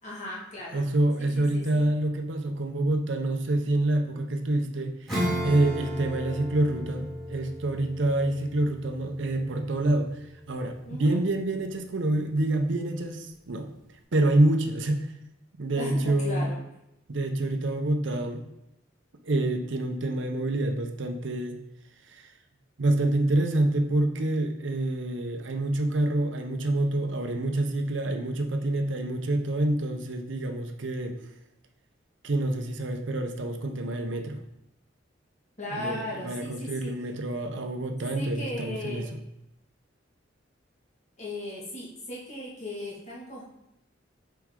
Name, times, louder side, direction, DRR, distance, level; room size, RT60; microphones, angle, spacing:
voice 1, 0.0-0.8 1.2-1.8 10.8-11.2 15.7-16.6 35.6-36.9 38.1-39.1 41.2-43.4, left 1 dB, 40° left, -5 dB, 1.9 m, -37 dB
voice 2, 0.7-10.1 10.5-13.7 14.1-15.1 15.6-16.5 17.1-18.4 19.3-21.6 22.1-22.2 22.8-31.2 32.2-34.4 35.7-39.0, right 1 dB, 70° right, 5 dB, 0.7 m, -27 dB
Acoustic guitar / Strum, 5.1-11.1, equal, ahead, 2.1 m, -34 dB
6.1 x 4.7 x 3.7 m, 0.84 s
head